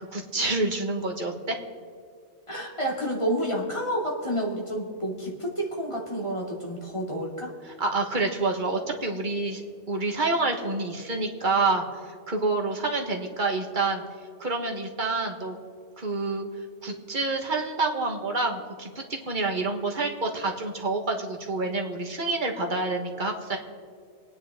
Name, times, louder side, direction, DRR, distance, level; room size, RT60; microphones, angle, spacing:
voice 1, 0.0-1.6 7.7-9.6 9.9-14.0 14.4-15.6 16.0-16.5 16.8-23.6, right 3 dB, 45° right, 3 dB, 1.6 m, -28 dB
voice 2, 2.5-7.5, equal, 25° left, -2 dB, 2.5 m, -29 dB
26.5 x 9.7 x 3.7 m, 2.1 s
omnidirectional pair, 1.2 m